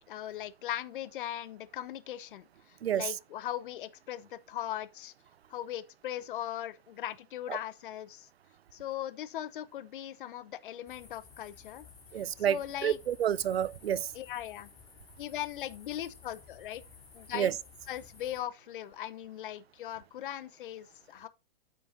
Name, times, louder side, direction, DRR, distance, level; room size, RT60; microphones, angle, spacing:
voice 1, 0.1-5.1 5.5-8.3 8.7-11.9 12.4-13.0 14.1-14.7 15.2-16.8 17.1-17.5 17.9-21.3, left 12 dB, 60° left, 0.9 m, -39 dB
sound 1, 10.9-18.4, left 6 dB, 10° left, 2.8 m, -55 dB
voice 2, 12.1-14.1 17.3-17.5, right 10 dB, 90° right, 0.6 m, -29 dB
9.3 x 5.6 x 3.9 m
hypercardioid pair, 140°, 30 cm